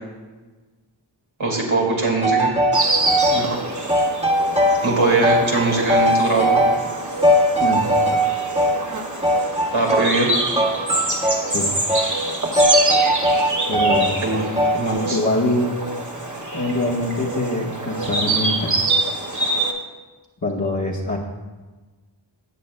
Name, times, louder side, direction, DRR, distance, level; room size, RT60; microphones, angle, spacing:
voice 1, 1.4-2.5 3.3-3.6 4.8-6.6 9.7-10.3 14.2-14.5 14.7-15.2, right 3 dB, 90° right, -3 dB, 2.3 m, -21 dB
sound 1, 2.2-3.5 3.9-5.0 5.2-6.9 7.2-8.8 9.2-10.3 10.6-11.5 11.9-12.2 12.6-14.1 14.6-14.9, equal, 15° right, 1.3 m, -19 dB
Insect, 2.7-19.7, right 2 dB, 40° right, 1.3 m, -25 dB
voice 2, 13.7-14.2 15.1-15.8 16.5-18.7 20.4-21.2, left 1 dB, 35° left, -5 dB, 1.2 m, -23 dB
18.0 x 8.3 x 2.2 m, 1.3 s
wide cardioid pair, 45°, 46 cm